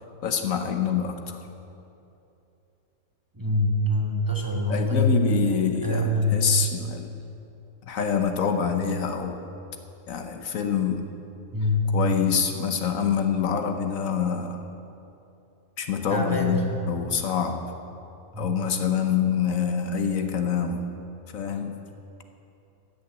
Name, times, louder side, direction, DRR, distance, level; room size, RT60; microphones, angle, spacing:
voice 1, 0.2-1.4 4.7-7.2 7.9-9.4 10.1-11.1 11.9-14.6 15.8-16.6 16.9-17.7 18.4-20.9 21.3-21.8, left 7 dB, 70° left, 6 dB, 1.2 m, -26 dB
voice 2, 3.3-5.2 5.8-6.4 11.5-11.9 16.1-16.6 18.3-18.5, left 1 dB, 15° right, 0 dB, 1.2 m, -24 dB
13.5 x 6.8 x 8.9 m, 2.8 s
omnidirectional pair, 1.6 m